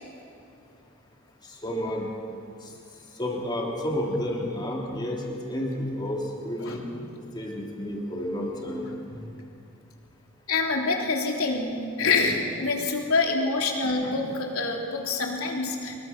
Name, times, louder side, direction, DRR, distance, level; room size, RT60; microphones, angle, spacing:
voice 1, 1.6-2.1 3.2-6.8 7.3-8.9, left 1 dB, 20° left, -2 dB, 3.3 m, -30 dB
voice 2, 10.5-16.0, left 3 dB, 75° left, 0 dB, 3.4 m, -26 dB
25.0 x 22.0 x 6.1 m, 2.5 s
head